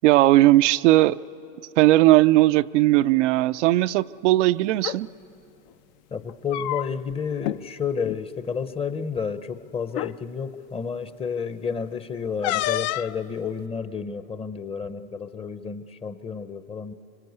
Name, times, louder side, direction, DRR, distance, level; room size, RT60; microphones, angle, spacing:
voice 1, 0.0-1.2 1.8-5.1, right 17 dB, 80° right, 0.5 m, -18 dB
sound 1, 4.7-5.0 6.2-7.1 7.4-7.6 8.0-8.2 9.2-9.3 9.9-10.1 12.4-13.2, left 15 dB, 50° left, 0.5 m, -28 dB
voice 2, 6.1-16.9, left 6 dB, 15° left, 0.7 m, -31 dB
25.0 x 25.0 x 8.1 m
supercardioid pair, 130°, 35 cm